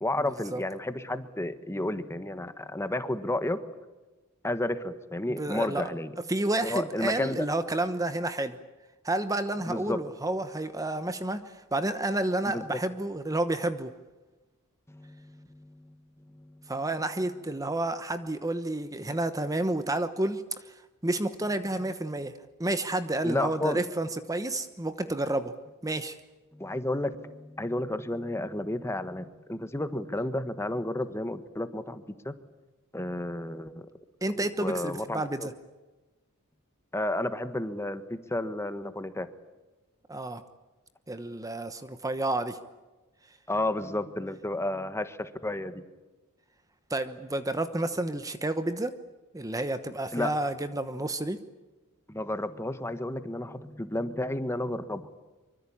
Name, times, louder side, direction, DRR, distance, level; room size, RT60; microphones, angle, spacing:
voice 1, 0.0-3.6 4.4-6.1 6.6-7.5 9.7-10.0 12.5-12.6 14.9-16.7 23.2-23.8 26.5-32.3 32.9-33.9 34.4-35.5 36.9-39.3 43.5-45.8 50.1-50.3 52.1-55.1, left 1 dB, 10° left, 11 dB, 1.4 m, -32 dB
voice 2, 5.3-5.9 6.3-8.6 9.0-13.9 16.7-22.3 22.6-25.5 25.8-26.2 34.2-35.5 40.1-40.4 41.1-42.6 46.9-48.9 49.3-51.4, right 2 dB, 15° right, 10 dB, 1.0 m, -30 dB
25.0 x 24.5 x 8.7 m, 1.2 s
head